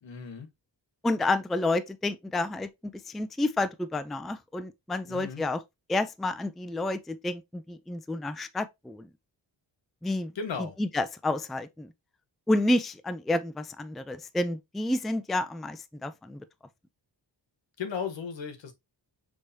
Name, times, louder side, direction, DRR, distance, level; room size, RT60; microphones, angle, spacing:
voice 1, 0.0-0.5 5.1-5.4 10.3-10.8 17.8-18.7, left 6 dB, 80° left, 1.3 m, -35 dB
voice 2, 1.0-5.6 5.9-9.1 10.0-10.3 10.8-11.9 12.5-16.4, left 2 dB, ahead, 0.3 m, -30 dB
6.2 x 3.2 x 2.7 m
cardioid pair, 80°, 44 cm